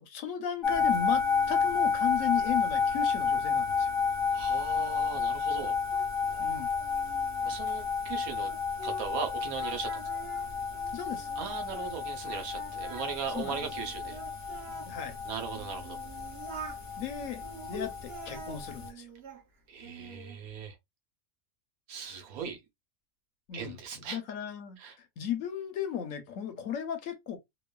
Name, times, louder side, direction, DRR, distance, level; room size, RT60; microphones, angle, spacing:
voice 1, 0.0-3.9 6.4-6.7 10.9-11.3 13.3-13.6 14.8-15.2 17.0-17.4 17.7-19.1 23.5-24.8 25.2-27.4, left 9 dB, 70° left, 1.0 m, -36 dB
sound 1, 0.6-18.9, left 5 dB, 35° left, 0.5 m, -31 dB
voice 2, 4.3-5.8 7.4-8.5 8.8-9.9 11.4-14.2 15.2-16.0 19.7-20.8 21.9-22.6 23.5-24.2 24.8-24.9, right 6 dB, 85° right, 1.2 m, -38 dB
Singing, 4.8-9.3 9.6-11.9 12.3-14.9 15.5-16.8 17.4-19.4 19.8-20.4, right 3 dB, 50° right, 0.9 m, -47 dB
2.9 x 2.2 x 2.2 m
omnidirectional pair, 1.5 m